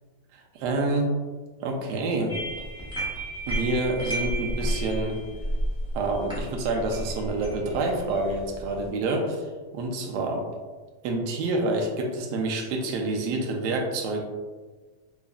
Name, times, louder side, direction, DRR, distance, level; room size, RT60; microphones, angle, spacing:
voice 1, 0.3-1.1 1.6-2.4 3.5-5.2 5.9-9.4 9.7-10.5 11.0-14.2, right 2 dB, 75° right, 1 dB, 1.1 m, -27 dB
sound 1, 2.3-8.9, right 1 dB, 5° right, 0.7 m, -32 dB
4.7 x 2.5 x 2.3 m, 1.3 s
omnidirectional pair, 2.0 m